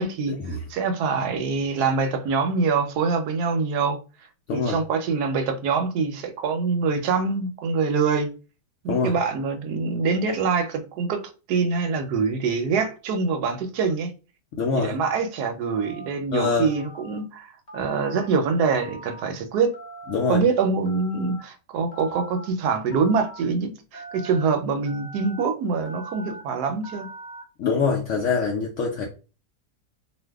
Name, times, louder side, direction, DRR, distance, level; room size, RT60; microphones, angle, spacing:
voice 1, 0.0-4.0 4.5-8.3 8.8-11.2 11.5-14.1 14.7-19.7 20.3-27.1, right 5 dB, 75° right, 1.1 m, -24 dB
voice 2, 14.5-14.9 16.3-16.7 20.1-20.4 27.6-29.0, left 5 dB, 70° left, 0.7 m, -24 dB
Telephone, 15.6-16.1 16.6-17.2 17.7-18.3 18.7-19.3 19.7-20.3 20.8-21.4 21.9-22.5 22.9-23.4 23.9-24.4 24.8-25.4 25.8-26.4 26.8-27.4, right 2 dB, 30° left, 0.8 m, -41 dB
2.6 x 2.4 x 3.3 m
omnidirectional pair, 1.8 m